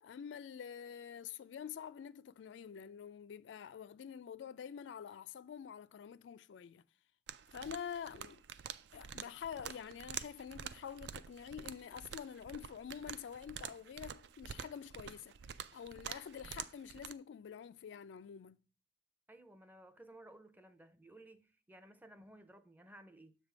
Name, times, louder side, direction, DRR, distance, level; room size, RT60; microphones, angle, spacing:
voice 1, 0.0-6.8 7.5-8.4 8.9-15.3 15.7-18.6, left 8 dB, 85° left, 0.3 m, -47 dB
sound 1, 7.3-17.1, right 8 dB, 70° right, 0.4 m, -48 dB
voice 2, 19.3-23.4, right 1 dB, 10° right, 0.5 m, -57 dB
7.3 x 3.4 x 6.0 m
head